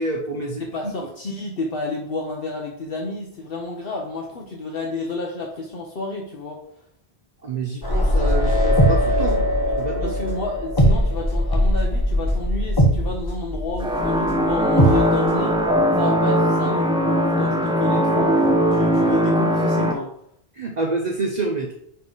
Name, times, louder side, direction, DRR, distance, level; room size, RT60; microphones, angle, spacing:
voice 1, 0.0-0.9 7.4-9.5 9.8-10.2 20.5-21.7, right 3 dB, 45° right, 1 dB, 0.9 m, -27 dB
voice 2, 0.6-6.6 10.0-15.6 16.0-20.1, left 2 dB, 60° left, 0 dB, 1.1 m, -30 dB
sound 1, 7.8-15.9, equal, 20° left, 1.2 m, -21 dB
sound 2, 13.8-19.9, equal, 5° right, 0.7 m, -20 dB
9.9 x 3.8 x 3.9 m, 0.69 s
omnidirectional pair, 1.1 m